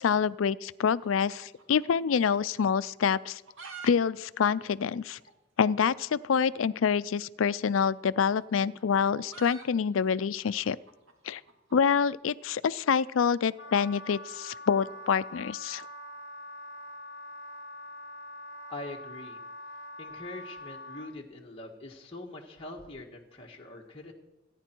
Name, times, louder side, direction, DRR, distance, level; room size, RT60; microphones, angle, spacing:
voice 1, 0.0-3.4 3.8-5.2 5.6-10.8 11.2-11.4 11.7-15.8, left 6 dB, 85° left, 17 dB, 0.4 m, -26 dB
sound 1, 1.0-2.3 2.6-2.7 3.2-3.9 4.2-4.3 4.5-4.6 5.2-5.3 6.5-6.7 7.8-12.0, right 5 dB, 85° right, 2.1 m, -48 dB
Wind instrument woodwind instrument, 13.6-21.1, left 1 dB, 55° left, 0.9 m, -44 dB
voice 2, 18.7-19.4 20.0-24.1, left 2 dB, 30° left, -2 dB, 1.5 m, -43 dB
29.0 x 10.0 x 4.5 m, 1.0 s
head